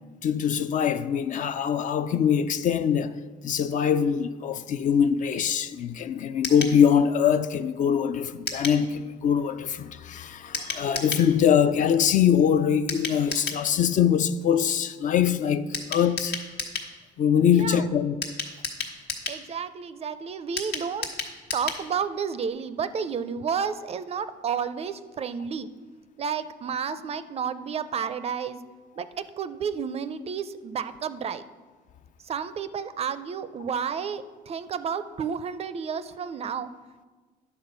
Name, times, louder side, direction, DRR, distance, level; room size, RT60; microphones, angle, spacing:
voice 1, 0.2-3.1 3.4-16.4 17.2-18.2, left 8 dB, 50° left, 0.4 m, -23 dB
sound 1, 6.4-6.8 8.5-8.8 10.5-11.3 12.9-13.6 15.7-16.9 18.2-19.4 20.6-21.8 22.1-22.2 22.5-22.6, left 4 dB, 75° left, 1.4 m, -32 dB
voice 2, 17.5-18.0 19.3-21.1 21.5-25.7 26.2-28.6 29.0-31.5 32.2-36.7, right 7 dB, 35° right, 0.4 m, -31 dB
9.8 x 4.3 x 6.6 m
cardioid pair, 110°, 17 cm